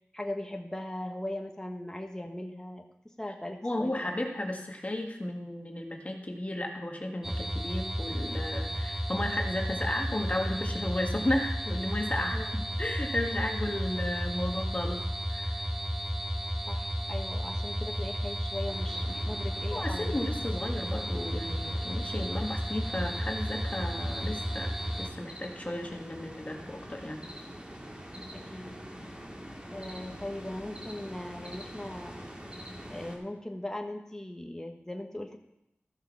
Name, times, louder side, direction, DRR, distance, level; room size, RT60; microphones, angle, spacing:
voice 1, 0.1-2.9 3.2-4.0 12.3-12.5 16.7-20.2 28.3-28.8 29.7-32.3 32.9-35.4, left 1 dB, 10° left, 3 dB, 1.3 m, -39 dB
voice 2, 3.6-15.6 19.7-27.2, left 1 dB, 30° left, 2 dB, 1.6 m, -34 dB
sound 1, 7.2-25.1, equal, 5° right, 0.7 m, -33 dB
sound 2, 18.7-33.2, equal, 25° right, 2.0 m, -45 dB
14.0 x 6.5 x 4.7 m, 0.86 s
cardioid pair, 45°, 4 cm